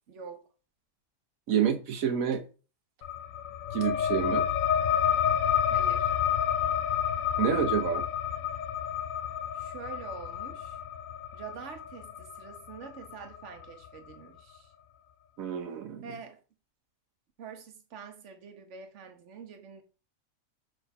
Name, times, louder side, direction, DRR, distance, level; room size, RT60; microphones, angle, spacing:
voice 1, 0.1-0.5 5.7-6.1 9.5-10.8 11.3-14.7 16.0-16.4 17.4-19.8, right 6 dB, 60° right, 1.4 m, -45 dB
voice 2, 1.5-2.4 3.7-4.4 7.4-8.0 15.4-16.0, right 8 dB, 90° right, 1.4 m, -28 dB
sound 1, 3.0-14.1, left 9 dB, 80° left, 1.1 m, -30 dB
6.1 x 3.8 x 5.4 m
omnidirectional pair, 1.4 m